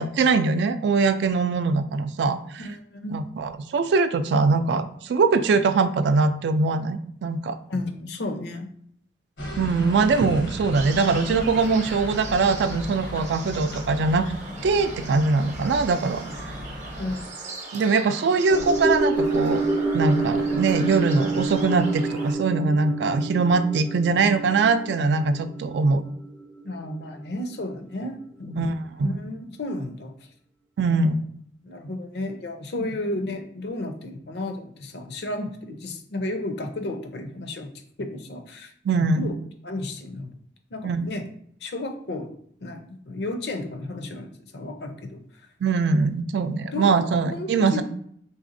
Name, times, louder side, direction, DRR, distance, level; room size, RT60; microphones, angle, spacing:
voice 1, 0.0-2.7 3.1-7.6 9.6-14.3 14.6-16.2 17.7-19.6 19.9-26.1 28.6-28.7 29.0-29.2 30.8-31.2 32.8-32.9 38.8-39.3 40.8-41.1 45.6-47.8, right 4 dB, 70° right, 10 dB, 0.3 m, -22 dB
voice 2, 2.6-3.2 7.7-8.7 17.0-17.3 26.6-30.1 30.9-31.0 31.6-37.7 38.0-39.3 39.6-40.3 40.7-41.2 41.6-42.3 42.6-45.2 46.7-47.8, left 2 dB, 65° left, 5 dB, 0.5 m, -33 dB
sound 1, 9.4-17.2, equal, 80° left, 0.9 m, -36 dB
sound 2, 10.7-22.3, right 3 dB, 40° right, 0.7 m, -39 dB
sound 3, 18.5-26.9 27.3-27.4, right 2 dB, 5° left, 0.4 m, -27 dB
4.0 x 3.4 x 2.5 m, 0.66 s
head